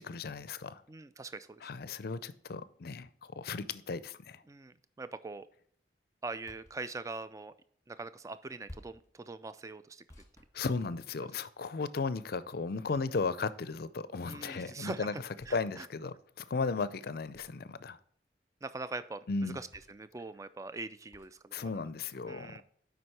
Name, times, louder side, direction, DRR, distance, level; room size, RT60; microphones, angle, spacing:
voice 1, 0.0-0.8 1.6-4.4 10.5-15.1 15.5-18.0 19.3-19.6 21.5-22.6, left 4 dB, 55° left, 0.5 m, -35 dB
voice 2, 0.9-1.7 4.5-5.5 6.2-7.5 7.9-10.0 11.2-11.3 14.3-15.2 15.5-15.9 18.6-21.5 22.3-22.6, right 3 dB, 15° right, 0.3 m, -42 dB
sound 1, 6.5-6.8 8.7-9.1 10.1-11.3 12.9-13.5 15.4-15.6 17.3-17.7 19.7-20.1 21.1-21.4, left 1 dB, 15° left, 1.4 m, -55 dB
7.8 x 5.1 x 4.3 m
head